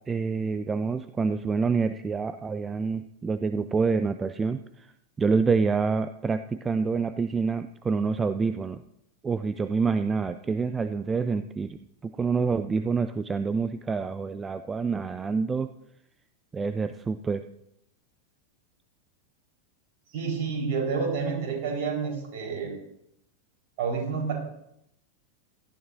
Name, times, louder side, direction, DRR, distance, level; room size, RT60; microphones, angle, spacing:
voice 1, 0.1-4.9 5.2-8.8 9.2-15.7 16.5-17.4, right 5 dB, 15° right, 12 dB, 0.4 m, -27 dB
voice 2, 20.1-22.7 23.8-24.3, right 5 dB, 50° right, 0 dB, 4.3 m, -29 dB
16.5 x 12.5 x 2.6 m, 0.79 s
figure-of-eight pair, 90°, 0 cm